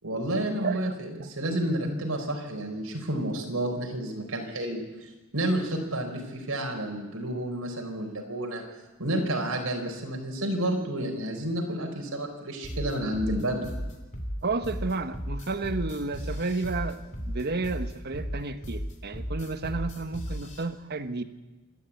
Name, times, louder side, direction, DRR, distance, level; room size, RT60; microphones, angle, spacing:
voice 1, 0.0-8.6 9.0-13.6, right 1 dB, 70° right, 2 dB, 4.2 m, -30 dB
voice 2, 0.6-1.3 14.4-21.2, right 3 dB, 45° right, 10 dB, 1.1 m, -32 dB
sound 1, 12.6-20.6, equal, 35° left, 3.1 m, -35 dB
27.5 x 12.0 x 8.4 m, 1.1 s
head